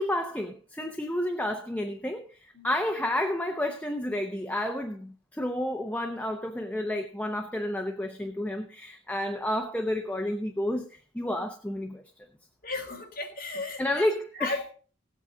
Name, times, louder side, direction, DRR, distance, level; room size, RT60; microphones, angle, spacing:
voice 1, 0.0-12.0 13.8-14.6, left 1 dB, 10° left, 0.7 m, -30 dB
voice 2, 12.6-14.0 14.3-14.7, left 3 dB, 50° left, 3.1 m, -35 dB
17.0 x 8.4 x 3.8 m
head